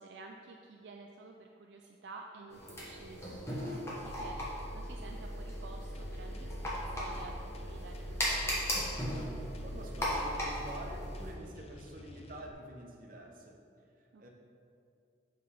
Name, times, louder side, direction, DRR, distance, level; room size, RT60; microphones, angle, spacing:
voice 1, 0.0-8.6 14.1-14.3, right 3 dB, 65° right, 2 dB, 0.3 m, -51 dB
sound 1, 2.5-11.3, equal, 15° left, 1.0 m, -38 dB
Engine, 4.0-11.3, equal, 5° right, 1.4 m, -43 dB
sound 2, 5.9-12.5, left 2 dB, 30° left, 0.3 m, -51 dB
voice 2, 9.6-13.6 14.0-14.3, right 1 dB, 45° right, 0 dB, 0.8 m, -47 dB
7.6 x 5.4 x 3.4 m, 2.5 s
head